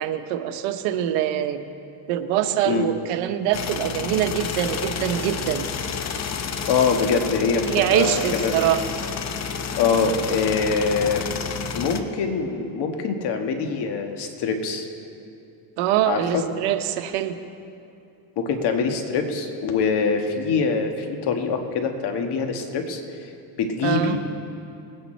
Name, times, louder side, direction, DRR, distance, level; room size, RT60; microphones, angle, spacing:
voice 1, 0.0-1.6 2.1-5.7 7.6-8.8 15.8-17.3 23.8-24.2, right 11 dB, 85° right, 9 dB, 0.9 m, -24 dB
sound 1, 3.5-12.0, left 6 dB, 35° left, 0.8 m, -30 dB
voice 2, 6.7-8.5 9.8-11.2 11.7-14.9 16.1-16.4 18.4-23.0 23.6-24.2, left 5 dB, 60° left, 5 dB, 1.5 m, -24 dB
20.0 x 9.0 x 4.3 m, 2.7 s
cardioid pair, 115°, 46 cm